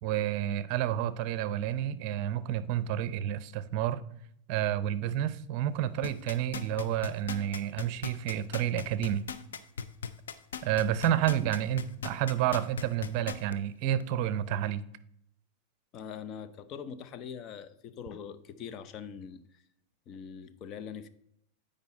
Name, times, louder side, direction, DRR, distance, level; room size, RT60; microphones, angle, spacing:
voice 1, 0.0-4.0 4.5-9.2 10.6-14.8, right 11 dB, 50° right, 0.6 m, -30 dB
sound 1, 6.0-13.5 14.0-14.1, left 6 dB, 85° left, 0.6 m, -37 dB
voice 2, 15.9-19.6 20.1-21.1, left 7 dB, 40° left, 0.7 m, -43 dB
8.8 x 5.3 x 4.1 m
hypercardioid pair, 115°, 0 cm